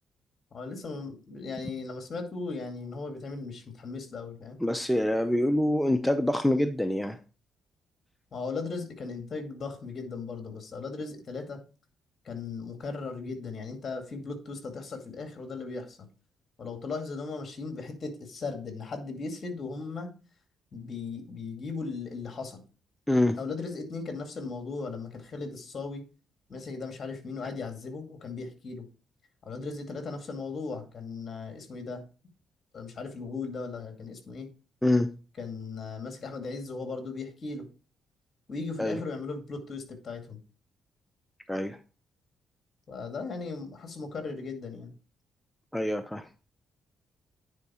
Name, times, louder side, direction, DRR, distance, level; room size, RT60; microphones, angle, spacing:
voice 1, 0.5-4.6 8.3-11.6 12.2-16.1 16.6-20.1 20.7-22.6 23.4-26.0 26.5-28.8 29.5-32.0 32.7-34.5 35.4-37.7 38.5-40.4 42.9-44.9, left 4 dB, 45° left, 5 dB, 2.3 m, -37 dB
voice 2, 4.6-7.2 23.1-23.4 34.8-35.1 38.8-39.0 41.5-41.8 45.7-46.3, left 1 dB, 5° left, 7 dB, 0.6 m, -25 dB
9.7 x 4.6 x 4.3 m, 0.35 s
cardioid pair, 90°, 0 cm